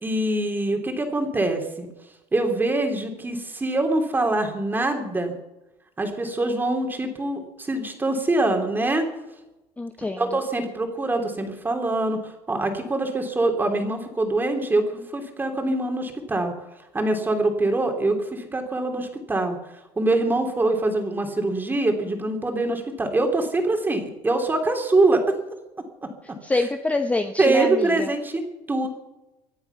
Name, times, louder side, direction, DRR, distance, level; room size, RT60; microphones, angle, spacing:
voice 1, 0.0-1.9 2.3-5.3 6.0-9.0 10.2-16.5 16.9-19.6 20.0-25.4 26.0-26.1 27.4-28.9, right 2 dB, 15° right, 4 dB, 3.0 m, -24 dB
voice 2, 9.8-10.4 26.2-28.1, left 2 dB, 10° left, 7 dB, 0.9 m, -26 dB
24.5 x 8.7 x 5.8 m, 1.0 s
cardioid pair, 125°, 13 cm